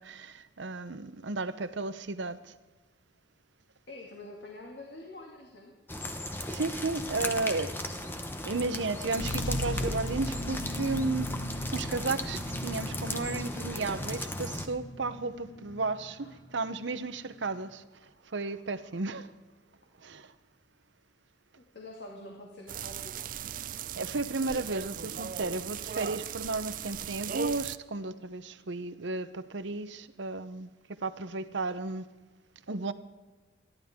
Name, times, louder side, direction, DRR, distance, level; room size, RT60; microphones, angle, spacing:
voice 1, 0.0-2.5 6.5-7.8 8.4-11.3 11.7-19.3 20.0-20.3 24.0-32.1 32.7-32.9, right 3 dB, 70° right, 12 dB, 0.9 m, -34 dB
voice 2, 3.9-5.8 16.2-16.3 21.6-23.2, left 2 dB, 60° left, -1 dB, 2.3 m, -46 dB
sound 1, 5.9-14.7, left 1 dB, 10° left, 1.0 m, -37 dB
sound 2, 9.2-16.7 17.4-17.5, left 1 dB, 80° left, 1.5 m, -37 dB
sound 3, 22.7-27.8, right 8 dB, 45° right, 0.4 m, -38 dB
27.5 x 11.5 x 3.7 m, 1.3 s
head